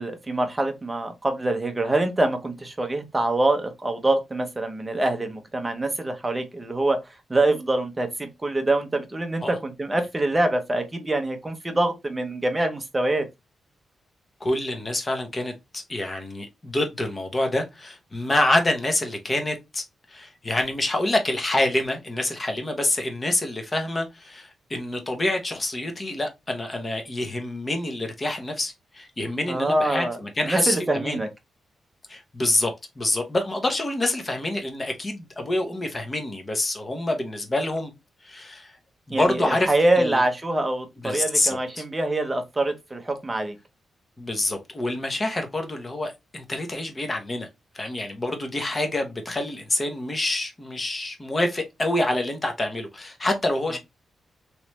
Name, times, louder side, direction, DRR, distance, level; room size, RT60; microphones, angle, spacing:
voice 1, 0.0-7.0 7.3-13.3 29.5-30.2 30.4-31.3 39.1-43.5, right 2 dB, 15° right, 0.7 m, -25 dB
voice 2, 14.4-31.2 32.1-37.9 38.2-38.7 39.1-40.2 41.0-41.8 44.2-47.5 47.7-53.8, left 1 dB, 20° left, 0.7 m, -27 dB
3.2 x 3.0 x 3.0 m
wide cardioid pair, 150°, 0 cm